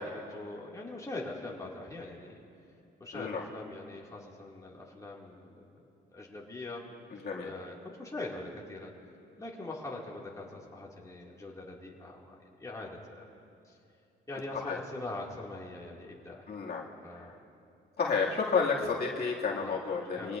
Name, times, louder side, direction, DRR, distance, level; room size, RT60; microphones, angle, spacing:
voice 1, 0.0-2.4 3.0-5.8 6.1-6.8 7.4-8.9 9.4-13.2 13.6-13.8 14.3-16.5 17.0-17.3 18.8-18.9 19.5-19.8 20.2-20.4, left 2 dB, 15° left, -3 dB, 2.4 m, -42 dB
voice 2, 3.1-3.4 7.2-7.5 14.5-14.8 16.5-16.8 18.0-20.4, left 5 dB, 55° left, -4 dB, 2.4 m, -31 dB
24.5 x 18.0 x 2.6 m, 2.7 s
cardioid pair, 90°, 20 cm